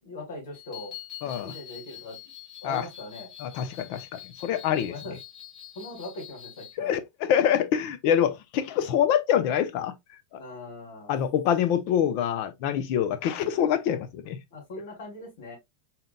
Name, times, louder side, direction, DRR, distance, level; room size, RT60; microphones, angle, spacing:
voice 1, 0.0-0.9 1.4-2.2 2.6-3.3 4.9-5.2 5.7-6.9 10.3-11.1 14.5-15.6, left 2 dB, 70° left, 2.9 m, -40 dB
sound 1, 0.5-6.8, left 12 dB, 20° left, 1.9 m, -45 dB
voice 2, 1.2-1.5 2.6-2.8 3.4-4.9 6.8-10.0 11.1-14.4, left 9 dB, 45° left, 0.6 m, -25 dB
4.1 x 3.8 x 2.2 m
supercardioid pair, 170°, 0 cm